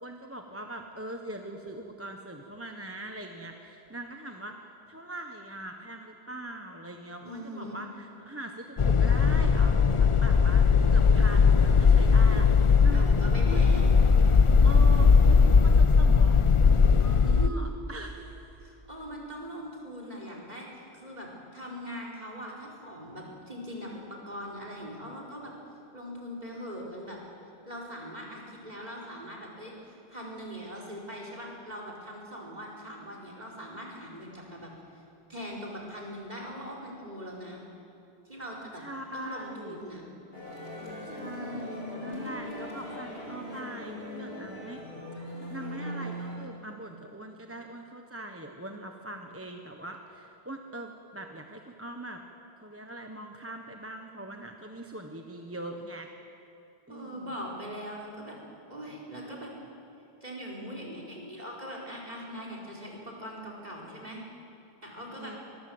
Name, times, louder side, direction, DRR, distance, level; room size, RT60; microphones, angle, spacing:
voice 1, 0.0-4.5 4.9-13.2 13.5-13.8 14.6-16.4 16.8-18.6 38.8-39.8 41.1-44.8 45.5-52.2 52.6-56.1 56.9-57.3 65.2-65.4, right 1 dB, 15° right, 3 dB, 1.2 m, -42 dB
voice 2, 7.2-7.8 12.9-14.0 17.2-17.5 18.6-25.5 25.9-27.2 27.6-34.7 35.3-37.6 38.2-38.8 39.1-40.0 41.3-42.2 56.9-58.4 58.7-59.5 60.2-64.2 64.8-65.3, equal, 40° right, -1 dB, 4.9 m, -41 dB
sound 1, 8.8-17.5, left 5 dB, 40° left, 0.5 m, -19 dB
sound 2, 40.3-46.4, left 1 dB, 65° left, 5.1 m, -39 dB
23.0 x 22.5 x 7.9 m, 2.8 s
omnidirectional pair, 1.1 m